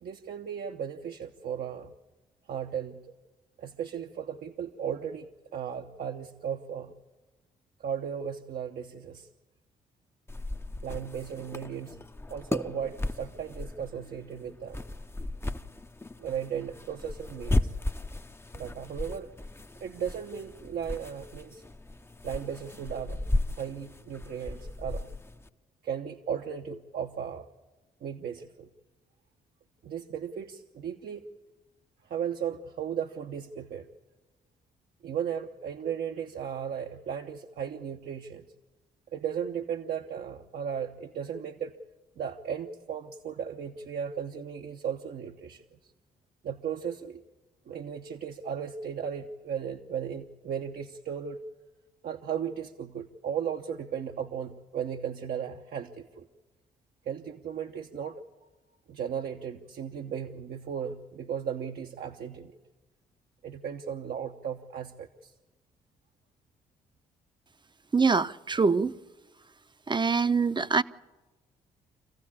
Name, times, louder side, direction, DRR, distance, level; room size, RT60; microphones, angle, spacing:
voice 1, 0.0-1.9 2.5-3.1 3.6-6.9 7.8-9.3 10.8-12.0 12.3-14.8 16.2-17.7 18.5-19.3 19.8-21.6 22.2-23.2 23.6-25.1 25.8-27.5 28.0-28.7 29.8-31.3 32.1-33.9 35.0-38.5 39.1-41.8 42.2-45.6 46.4-47.2 47.7-51.4 52.0-56.3 57.1-58.2 58.9-62.5 63.4-65.3, right 8 dB, 60° right, 1.0 m, -36 dB
sound 1, 10.3-25.5, left 2 dB, 15° left, 0.7 m, -35 dB
voice 2, 67.9-68.9 69.9-70.8, right 4 dB, 25° right, 0.8 m, -24 dB
26.5 x 15.5 x 8.6 m
hypercardioid pair, 50°, 18 cm